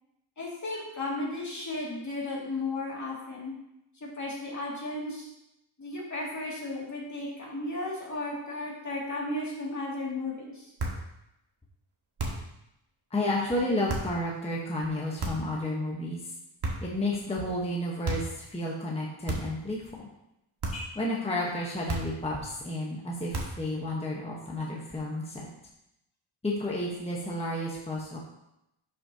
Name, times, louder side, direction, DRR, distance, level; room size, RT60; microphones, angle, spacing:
voice 1, 0.4-3.5 4.0-5.3 5.8-10.7, left 2 dB, 35° left, -4 dB, 2.3 m, -34 dB
sound 1, 10.8-11.1 12.2-12.6 13.9-14.2 15.2-15.6 16.6-17.0 18.0-18.4 19.3-19.7 20.6-21.0 21.9-22.3 23.3-23.7, right 2 dB, 50° right, 1.7 m, -33 dB
voice 2, 13.1-16.3 16.8-19.8 20.7-25.5 26.4-28.2, left 1 dB, 15° left, -3 dB, 1.1 m, -31 dB
11.5 x 6.3 x 2.8 m, 0.85 s
wide cardioid pair, 155°, 48 cm